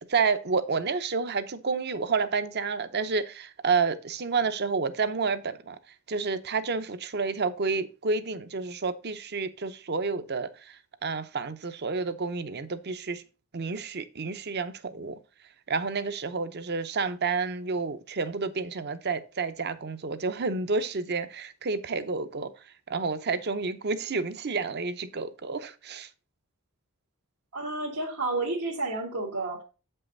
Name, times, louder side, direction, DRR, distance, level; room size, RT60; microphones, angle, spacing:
voice 1, 0.1-5.8 6.1-13.2 13.5-15.2 15.7-22.5 22.9-26.1, right 4 dB, 45° right, 0.7 m, -30 dB
voice 2, 27.5-29.6, right 2 dB, 80° right, 1.8 m, -31 dB
7.8 x 5.6 x 3.9 m
head